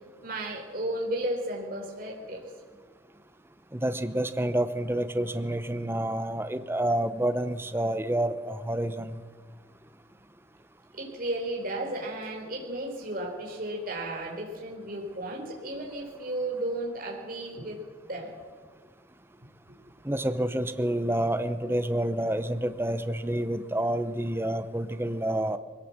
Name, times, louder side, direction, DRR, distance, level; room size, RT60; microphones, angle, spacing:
voice 1, 0.2-2.4 10.9-17.8 18.1-18.3, right 1 dB, 45° right, 0 dB, 4.0 m, -34 dB
voice 2, 3.7-9.2 20.0-25.6, right 1 dB, 10° right, 10 dB, 0.7 m, -28 dB
21.5 x 17.5 x 7.3 m, 1.5 s
head